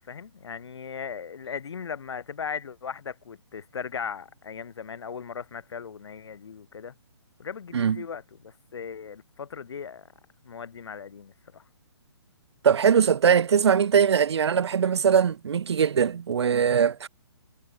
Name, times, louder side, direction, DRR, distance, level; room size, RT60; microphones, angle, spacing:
voice 1, 0.0-6.9 7.4-10.1 10.4-11.6, left 6 dB, 70° left, 2.5 m, -38 dB
voice 2, 7.7-8.0 12.6-17.1, right 7 dB, 70° right, 1.0 m, -21 dB
hypercardioid pair, 155°, 15 cm